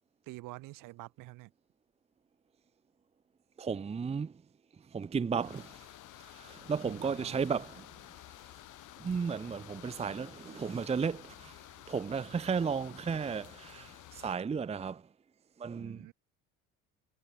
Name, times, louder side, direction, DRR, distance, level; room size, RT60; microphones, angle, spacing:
voice 1, 0.2-1.5 6.8-7.5 15.8-16.1, right 20 dB, 75° right, 4.9 m, -47 dB
voice 2, 3.6-4.3 4.9-5.9 6.2-7.9 9.0-11.6 11.9-15.0 15.6-16.0, right 6 dB, 20° right, 0.7 m, -34 dB
sound 1, 5.4-14.4, left 16 dB, 70° left, 7.2 m, -52 dB
cardioid pair, 100°, 32 cm